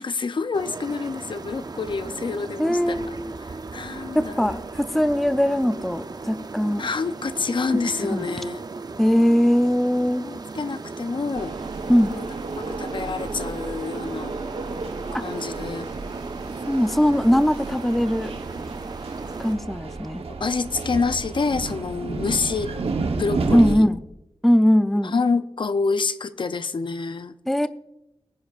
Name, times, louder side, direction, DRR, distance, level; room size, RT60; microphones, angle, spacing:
voice 1, 0.0-4.6 6.8-8.6 10.2-11.6 12.1-12.2 12.6-14.4 15.1-15.9 20.4-22.7 23.2-23.9 25.0-27.4, left 4 dB, 55° left, 12 dB, 0.6 m, -27 dB
sound 1, 0.5-19.6, right 3 dB, 40° right, 0.6 m, -37 dB
voice 2, 2.6-3.4 4.1-6.9 8.1-8.3 9.0-10.2 11.9-12.1 15.1-15.2 16.7-18.3 19.4-20.2 23.5-24.0 24.4-25.1 27.5-27.7, equal, ahead, 11 dB, 0.5 m, -20 dB
sound 2, 11.3-23.8, right 3 dB, 75° right, 1.0 m, -32 dB
22.0 x 9.8 x 2.5 m, 0.87 s
wide cardioid pair, 110°, 10 cm